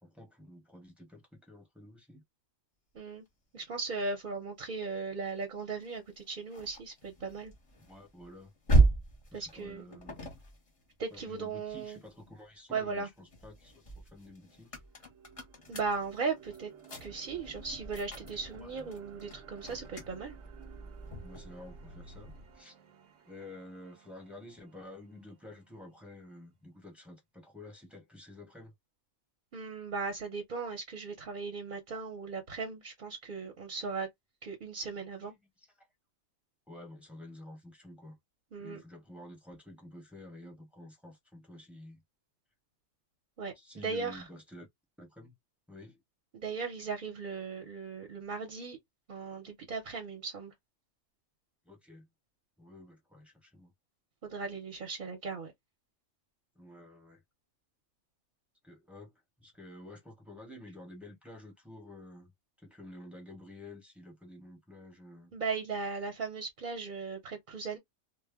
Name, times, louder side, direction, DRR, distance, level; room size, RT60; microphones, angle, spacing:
voice 1, 0.0-2.2 7.8-8.5 9.3-10.2 11.1-14.8 18.6-18.9 21.2-22.8 23.2-28.7 35.3-35.9 36.7-38.2 38.6-42.0 43.5-44.7 45.0-45.3 45.7-46.0 51.6-52.1 52.6-53.7 56.5-57.2 58.6-59.1 59.4-62.3 62.6-65.3, left 1 dB, ahead, 0.8 m, -50 dB
voice 2, 3.5-7.5 9.3-9.8 11.0-12.0 12.7-13.1 15.7-16.7 17.0-20.3 29.5-34.1 34.4-35.3 38.5-38.8 43.4-44.2 46.3-48.8 49.1-50.5 54.2-55.5 65.3-67.8, right 4 dB, 50° right, 0.8 m, -37 dB
sound 1, 5.8-12.3 12.8-22.6, right 2 dB, 35° left, 0.7 m, -35 dB
sound 2, 13.7-13.8 14.3-26.3, right 10 dB, 85° right, 1.0 m, -57 dB
2.1 x 2.0 x 3.4 m
omnidirectional pair, 1.2 m